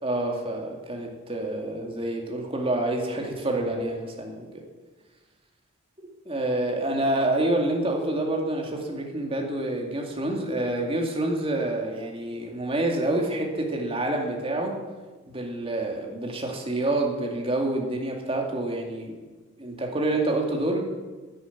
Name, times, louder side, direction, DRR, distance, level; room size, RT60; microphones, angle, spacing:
voice 1, 0.0-4.5 6.3-14.7 15.3-19.2 19.6-20.8, right 1 dB, 25° right, 1 dB, 2.4 m, -27 dB
11.5 x 9.9 x 9.5 m, 1.3 s
head